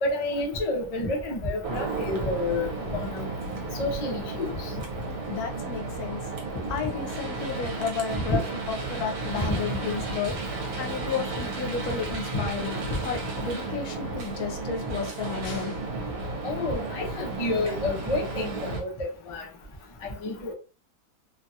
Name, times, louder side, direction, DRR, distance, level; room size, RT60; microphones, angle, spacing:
voice 1, 0.0-3.3 3.7-4.7 8.3-8.4 9.3-9.6 12.9-13.0 16.4-19.5 20.0-20.5, left 2 dB, 45° left, 0.4 m, -29 dB
sound 1, 1.6-18.8, right 3 dB, 70° right, 1.2 m, -33 dB
voice 2, 5.3-6.3 6.7-15.8, left 6 dB, 75° left, 1.1 m, -33 dB
2.8 x 2.3 x 2.7 m
omnidirectional pair, 1.6 m